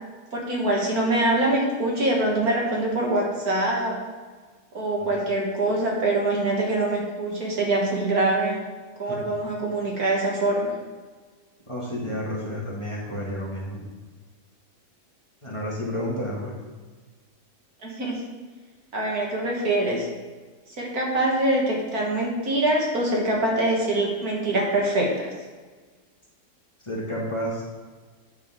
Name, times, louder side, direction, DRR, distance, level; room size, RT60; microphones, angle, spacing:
voice 1, 0.3-4.0 4.7-8.6 9.0-10.7 17.8-18.2 18.9-20.1 20.8-25.1, right 1 dB, 65° right, -2 dB, 2.0 m, -24 dB
voice 2, 11.7-13.8 15.4-16.5 26.8-27.8, equal, 20° left, -6 dB, 1.9 m, -31 dB
8.6 x 6.9 x 3.7 m, 1.4 s
omnidirectional pair, 1.7 m